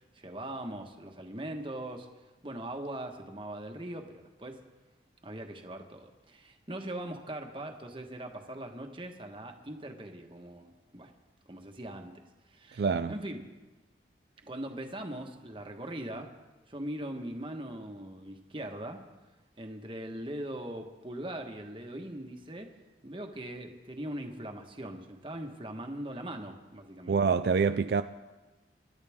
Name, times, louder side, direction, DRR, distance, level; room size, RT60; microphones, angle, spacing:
voice 1, 0.0-2.1 2.4-4.6 5.2-11.1 11.5-12.2 12.5-13.5 14.4-16.4 16.7-19.1 19.6-22.7 23.0-27.3, right 1 dB, 30° right, 1.3 m, -41 dB
voice 2, 12.7-13.1 27.1-28.0, right 5 dB, 65° right, 0.4 m, -26 dB
27.0 x 12.5 x 3.6 m
head